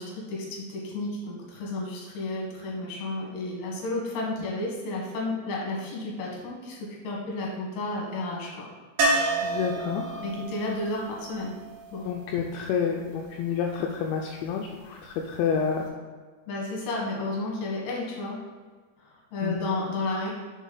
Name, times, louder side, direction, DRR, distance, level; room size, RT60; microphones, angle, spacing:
voice 1, 0.0-8.7 10.2-11.5 11.9-12.0 16.5-18.4 19.3-20.3, left 2 dB, 65° left, -3 dB, 3.0 m, -32 dB
sound 1, 9.0-12.9 15.5-15.6 15.9-16.0, right 2 dB, 90° right, 2.0 m, -30 dB
voice 2, 9.4-10.2 12.0-15.9 19.4-19.6, left 7 dB, 85° left, 1 dB, 2.6 m, -29 dB
6.5 x 4.1 x 4.0 m, 1.4 s
omnidirectional pair, 5.5 m